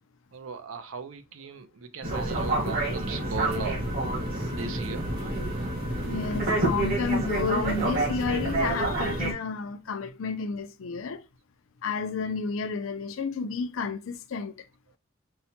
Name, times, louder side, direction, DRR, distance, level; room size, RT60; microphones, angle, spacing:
voice 1, 0.3-3.8 4.4-5.1, right 4 dB, 80° right, 0.5 m, -37 dB
sound 1, 2.0-9.3, right 2 dB, 50° right, 1.4 m, -28 dB
voice 2, 6.1-11.2 11.8-14.5, left 4 dB, 75° left, 0.4 m, -31 dB
5.3 x 2.2 x 2.8 m
head